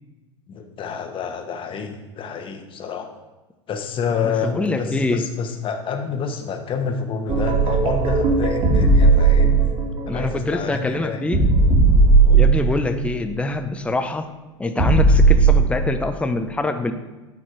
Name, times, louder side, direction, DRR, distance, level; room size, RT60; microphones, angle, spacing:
voice 1, 0.5-3.1 3.7-9.8 10.1-11.3 12.2-12.5, left 6 dB, 35° left, 5 dB, 1.2 m, -28 dB
voice 2, 4.2-5.2 10.1-11.4 12.3-14.3 14.6-16.9, left 2 dB, 5° left, 7 dB, 0.6 m, -24 dB
sound 1, 7.3-13.1 14.8-15.8, right 3 dB, 40° right, 2.4 m, -16 dB
9.3 x 4.1 x 4.7 m, 1.1 s
hypercardioid pair, 90°, 16 cm